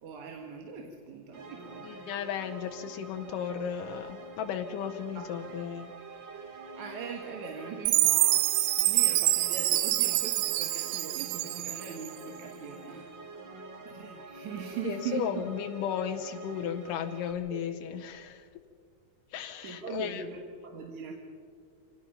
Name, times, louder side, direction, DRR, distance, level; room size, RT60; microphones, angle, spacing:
voice 1, 0.0-2.0 5.2-5.3 5.5-5.6 6.7-8.5 8.8-13.1 13.9-15.4 17.5-17.6 19.4-21.2, right 6 dB, 65° right, 2 dB, 2.8 m, -41 dB
sound 1, 1.3-17.3, right 3 dB, 45° right, 2.0 m, -46 dB
voice 2, 1.8-5.9 14.8-18.5 19.3-20.2, left 8 dB, 85° left, 5 dB, 2.4 m, -35 dB
Chime, 7.9-12.1, right 16 dB, 80° right, 2.3 m, -26 dB
26.5 x 18.0 x 5.7 m, 2.2 s
omnidirectional pair, 3.7 m